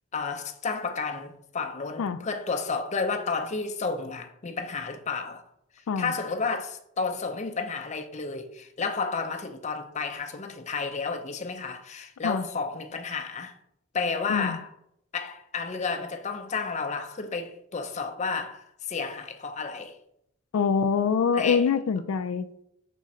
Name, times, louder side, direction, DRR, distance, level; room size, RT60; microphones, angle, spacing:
voice 1, 0.1-5.4 5.8-13.6 13.9-14.7 15.1-20.0 21.3-21.7, left 4 dB, 35° left, 0.5 m, -31 dB
voice 2, 20.5-22.5, left 6 dB, 90° left, 0.4 m, -25 dB
6.1 x 3.6 x 4.2 m
head